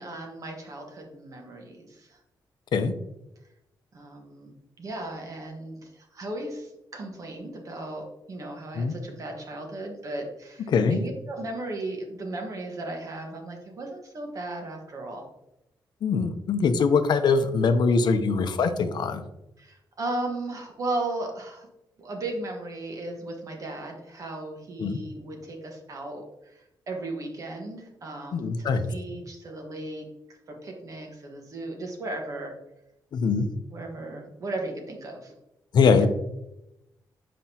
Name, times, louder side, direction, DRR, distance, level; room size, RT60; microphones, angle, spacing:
voice 1, 0.0-2.2 3.9-15.2 19.6-21.7 22.0-26.2 26.5-32.5 33.7-35.3 35.9-36.1, right 2 dB, 45° right, 2 dB, 1.3 m, -36 dB
voice 2, 16.0-19.2 24.8-25.0 28.3-28.8 33.1-33.5 35.7-36.1, left 5 dB, 65° left, 8 dB, 0.6 m, -22 dB
7.4 x 5.1 x 2.9 m, 0.87 s
wide cardioid pair, 160°, 8 cm